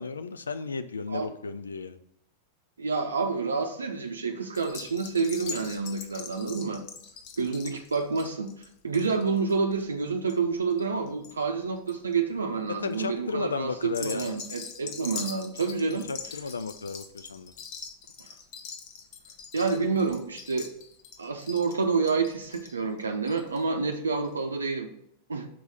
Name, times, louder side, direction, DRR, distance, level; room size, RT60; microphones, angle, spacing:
voice 1, 0.0-2.0 12.8-14.4 15.9-17.5, left 4 dB, 75° left, 11 dB, 0.4 m, -34 dB
voice 2, 2.8-6.8 7.4-8.5 8.8-16.1 18.2-18.3 19.5-20.7 21.2-24.9 25.3-25.5, right 4 dB, 75° right, 4 dB, 0.6 m, -28 dB
sound 1, 4.5-11.3 11.6-12.1 12.7-13.0 13.8-23.6 23.9-24.0 24.2-24.3, left 6 dB, 45° left, 1.1 m, -43 dB
6.0 x 4.7 x 5.4 m, 0.75 s
figure-of-eight pair, 90°, 0 cm